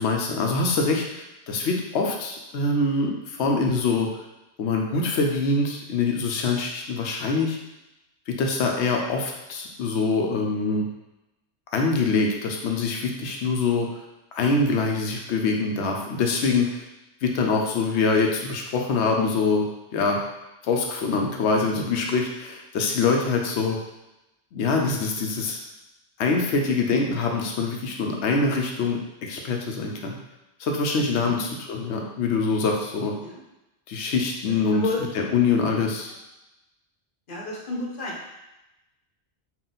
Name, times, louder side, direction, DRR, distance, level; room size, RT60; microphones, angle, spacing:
voice 1, 0.0-4.1 4.6-7.6 8.3-10.9 11.7-13.9 14.3-16.8 17.2-19.7 19.9-20.2 20.6-23.8 24.5-25.6 26.2-30.2 30.6-33.1 33.9-34.8 35.1-36.1, left 4 dB, 85° left, 1 dB, 0.9 m, -24 dB
voice 2, 34.7-35.0 37.3-38.1, left 3 dB, 55° left, -2 dB, 0.9 m, -31 dB
3.9 x 2.4 x 3.9 m, 0.95 s
omnidirectional pair, 1.1 m